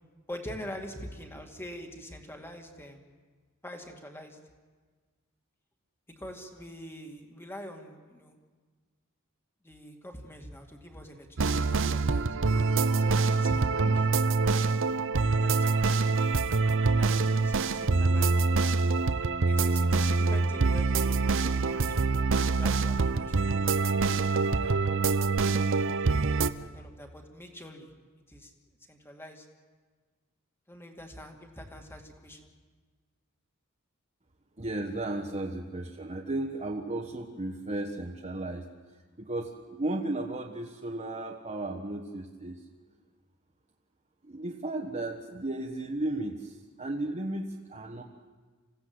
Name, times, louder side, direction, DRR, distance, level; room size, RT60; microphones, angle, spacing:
voice 1, 0.3-3.0 3.6-4.4 6.2-8.4 9.6-12.4 13.0-14.1 15.4-18.4 19.4-22.1 22.6-25.4 26.6-27.9 28.3-28.5 28.9-29.5 30.7-32.5, equal, 10° left, 3 dB, 2.3 m, -45 dB
sound 1, 11.4-26.5, right 4 dB, 65° right, 0.7 m, -25 dB
voice 2, 34.6-38.7 39.2-42.6 44.3-48.0, right 2 dB, 30° right, 1 dB, 1.4 m, -34 dB
26.5 x 16.5 x 8.0 m, 1.4 s
head